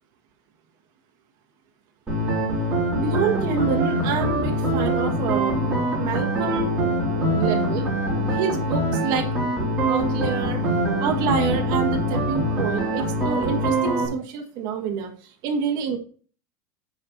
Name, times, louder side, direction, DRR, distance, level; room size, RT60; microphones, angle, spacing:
sound 1, 2.1-14.1, right 1 dB, 15° right, 3.6 m, -24 dB
voice 1, 2.9-5.6 6.0-6.7 7.3-7.9 8.3-9.3 9.9-10.6 11.0-15.1 15.4-16.0, right 6 dB, 40° right, 2 dB, 1.9 m, -27 dB
10.0 x 4.5 x 4.2 m, 0.41 s
supercardioid pair, 170°, 10 cm